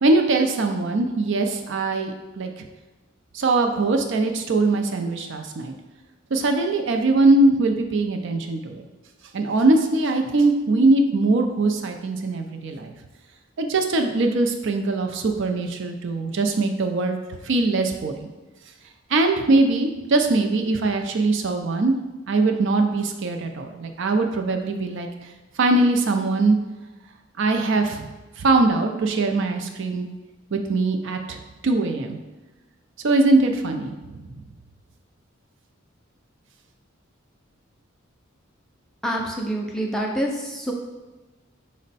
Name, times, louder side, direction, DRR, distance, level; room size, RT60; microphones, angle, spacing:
voice 1, 0.0-2.5 3.3-5.7 6.3-8.8 9.3-12.9 13.6-17.2 17.4-18.3 19.1-21.9 22.3-25.1 25.6-26.6 27.4-28.1 28.4-30.1 30.5-31.4 31.6-32.2 33.0-34.4, right 2 dB, 65° right, 4 dB, 0.5 m, -21 dB
voice 2, 39.0-40.7, right 1 dB, ahead, -1 dB, 0.4 m, -26 dB
5.2 x 2.1 x 4.0 m, 1.1 s
head